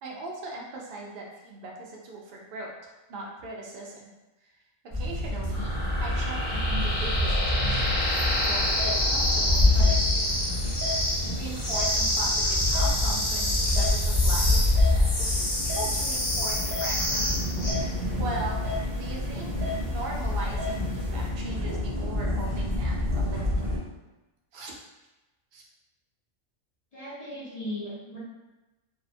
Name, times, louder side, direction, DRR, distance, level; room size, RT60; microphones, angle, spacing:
voice 1, 0.0-4.1 4.4-4.5 4.8-5.7 6.0-10.5 10.9-15.5 15.7-17.4 17.7-18.6 18.9-23.7 24.5-24.7 25.5-25.6, right 2 dB, 65° right, -2 dB, 0.5 m, -39 dB
sound 1, 4.9-23.8, left 2 dB, 15° right, 0.6 m, -27 dB
sound 2, 5.5-17.7, left 1 dB, 65° left, 1.1 m, -28 dB
sound 3, 8.0-21.3, left 1 dB, 45° right, 0.9 m, -39 dB
voice 2, 26.9-28.2, left 1 dB, 45° left, -9 dB, 0.5 m, -37 dB
2.7 x 2.0 x 2.6 m, 1.1 s
omnidirectional pair, 1.4 m